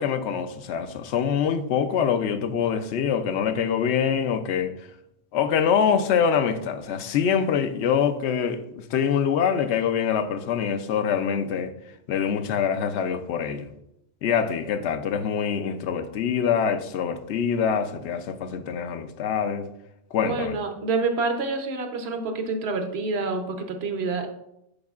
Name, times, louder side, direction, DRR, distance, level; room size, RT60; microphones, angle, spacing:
voice 1, 0.0-4.7 5.3-11.7 12.1-13.7 14.2-19.7 20.1-20.6, left 7 dB, 70° left, 0.8 m, -25 dB
voice 2, 20.2-24.3, right 3 dB, 65° right, 1.1 m, -27 dB
10.0 x 4.6 x 2.4 m
omnidirectional pair, 1.2 m